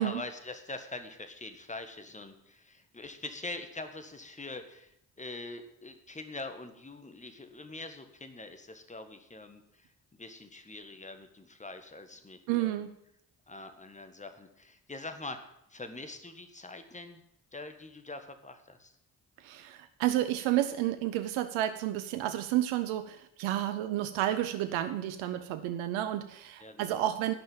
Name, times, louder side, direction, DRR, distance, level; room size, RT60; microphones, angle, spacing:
voice 1, 0.0-4.9 5.2-12.9 13.5-17.2 17.5-18.9 26.6-27.0, left 2 dB, 15° left, 8 dB, 1.7 m, -44 dB
voice 2, 12.5-12.9 19.4-27.3, right 13 dB, 75° right, 9 dB, 0.7 m, -31 dB
12.0 x 5.5 x 9.0 m, 0.76 s
hypercardioid pair, 40°, 47 cm